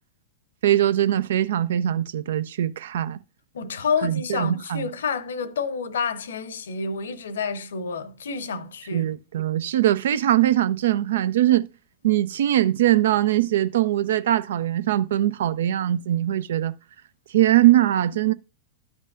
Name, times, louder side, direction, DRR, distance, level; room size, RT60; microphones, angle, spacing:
voice 1, 0.6-3.2 4.0-4.8 8.9-11.7 12.0-16.7 17.3-18.3, right 13 dB, 60° right, 0.4 m, -21 dB
voice 2, 3.5-9.1, left 5 dB, 65° left, 0.7 m, -29 dB
12.5 x 5.4 x 2.5 m
figure-of-eight pair, 90°, 0 cm